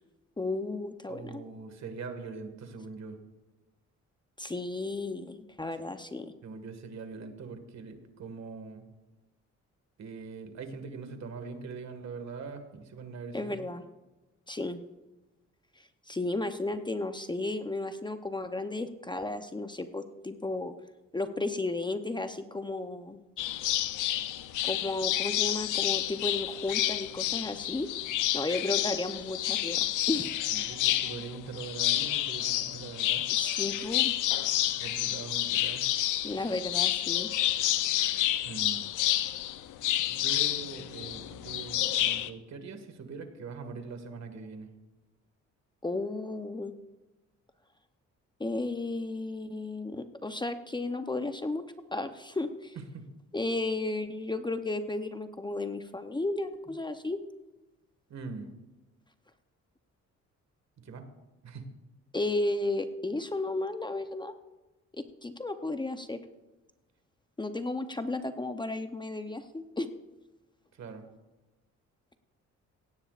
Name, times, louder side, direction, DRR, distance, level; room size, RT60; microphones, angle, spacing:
voice 1, 0.4-1.4 4.4-6.3 13.3-13.8 14.5-14.8 15.8-20.7 21.1-23.2 24.6-27.9 28.3-30.3 33.3-34.1 36.2-37.3 45.8-46.7 48.4-51.6 51.9-52.8 53.3-57.2 62.1-64.3 64.9-66.2 67.4-69.9, left 2 dB, 15° left, 8 dB, 0.7 m, -33 dB
voice 2, 1.1-3.2 6.4-8.8 10.0-13.6 30.5-33.2 34.8-35.8 38.4-38.9 40.1-44.7 52.8-53.1 58.1-58.5 60.8-61.1 61.4-61.7 70.7-71.1, right 4 dB, 60° right, 7 dB, 1.9 m, -42 dB
sound 1, 23.4-42.3, left 13 dB, 85° left, 0.7 m, -29 dB
17.0 x 16.0 x 2.5 m, 1.1 s
cardioid pair, 90°, 30 cm